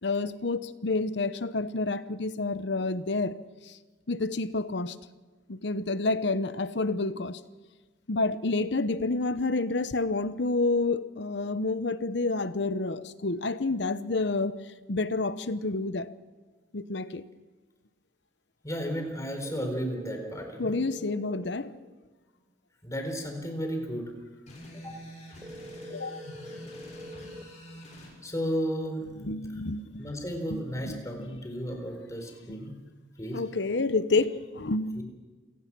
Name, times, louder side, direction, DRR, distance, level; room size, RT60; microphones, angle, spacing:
voice 1, 0.0-3.4 3.7-3.8 4.1-4.9 5.5-7.4 8.1-14.5 14.9-16.1 16.7-17.2 20.6-21.8 25.9-26.2 29.2-30.0 30.5-31.4 32.5-32.7 33.3-35.0, left 3 dB, 65° left, 0.9 m, -29 dB
voice 2, 18.6-20.7 22.8-24.1 24.8-25.0 28.2-29.4 30.0-32.7 33.2-33.4 34.9-35.0, equal, 15° left, 4.3 m, -33 dB
sound 1, 19.4-21.4 25.4-27.4, equal, 15° right, 1.6 m, -44 dB
sound 2, 24.5-28.1, equal, 35° left, 6.3 m, -46 dB
27.5 x 17.5 x 6.1 m
head